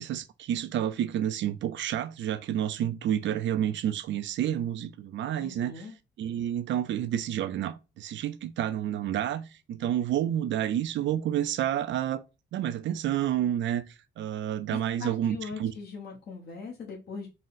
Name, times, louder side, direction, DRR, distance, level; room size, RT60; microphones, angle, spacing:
voice 1, 0.0-5.7 6.2-12.2 12.5-13.8 14.2-15.7, right 11 dB, 70° right, 0.5 m, -29 dB
voice 2, 5.4-5.9 14.7-17.3, left 5 dB, 55° left, 1.0 m, -40 dB
3.9 x 2.1 x 3.9 m
cardioid pair, 90°, 20 cm